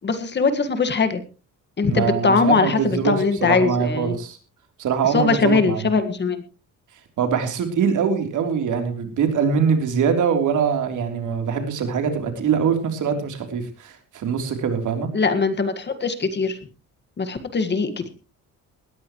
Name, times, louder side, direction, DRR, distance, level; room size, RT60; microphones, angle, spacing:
voice 1, 0.0-1.2 1.8-4.2 5.0-6.4 15.1-16.6 17.2-18.1, left 4 dB, 30° left, 9 dB, 1.7 m, -21 dB
voice 2, 1.9-3.1 3.4-4.4 4.8-5.8 7.2-15.1, right 6 dB, 65° right, 6 dB, 3.4 m, -23 dB
19.5 x 15.0 x 3.1 m, 0.34 s
cardioid pair, 140°, 33 cm